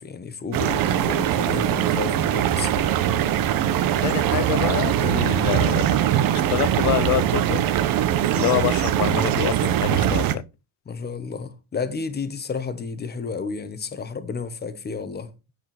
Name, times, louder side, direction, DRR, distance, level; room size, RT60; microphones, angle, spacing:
voice 1, 0.0-2.9 10.9-15.3, left 5 dB, 25° left, 1.3 m, -31 dB
sound 1, 0.5-10.4, right 11 dB, 55° right, 1.1 m, -22 dB
voice 2, 4.0-6.1 6.5-7.6 8.3-10.4, left 16 dB, 45° left, 0.5 m, -26 dB
9.5 x 8.0 x 4.3 m
cardioid pair, 145°, 42 cm